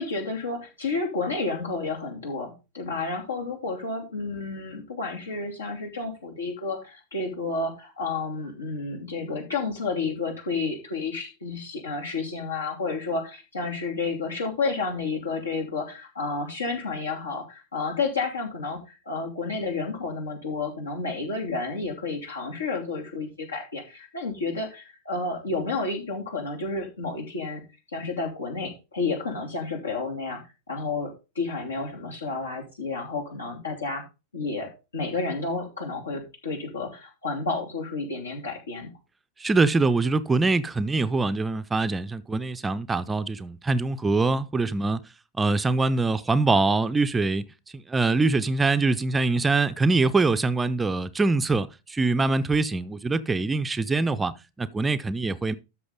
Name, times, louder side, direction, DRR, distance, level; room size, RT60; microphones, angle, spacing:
voice 1, 0.0-27.6 27.9-30.4 30.7-34.0 34.3-38.9, left 3 dB, 75° left, 2.9 m, -31 dB
voice 2, 39.4-45.0 45.4-47.4 47.7-55.5, right 3 dB, 15° right, 0.5 m, -24 dB
13.0 x 6.0 x 3.7 m
figure-of-eight pair, 90°, 0 cm